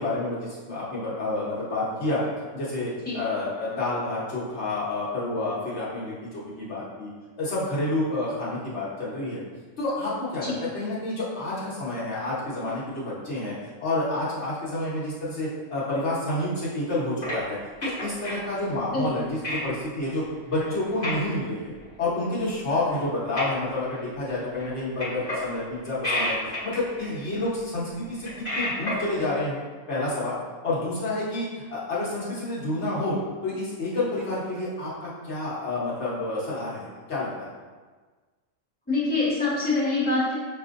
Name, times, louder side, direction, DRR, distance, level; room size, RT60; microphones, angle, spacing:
voice 1, 0.0-2.2 2.5-7.1 7.4-9.4 9.8-13.5 13.8-21.7 22.0-28.3 28.5-29.6 29.9-33.2 33.4-37.5, left 2 dB, 60° left, -8 dB, 1.3 m, -29 dB
sound 1, 17.2-18.4 19.0-19.2 19.4-19.6 20.0-20.2 20.6-20.7 21.0-21.2 21.7-21.8 22.5-22.6 22.9-24.1 24.3-24.7 25.0-25.6 25.8-27.5 28.0-29.1, left 1 dB, 35° left, 1.1 m, -31 dB
voice 2, 38.9-40.3, left 3 dB, 10° left, -9 dB, 1.1 m, -25 dB
6.1 x 2.6 x 2.5 m, 1.4 s
omnidirectional pair, 1.4 m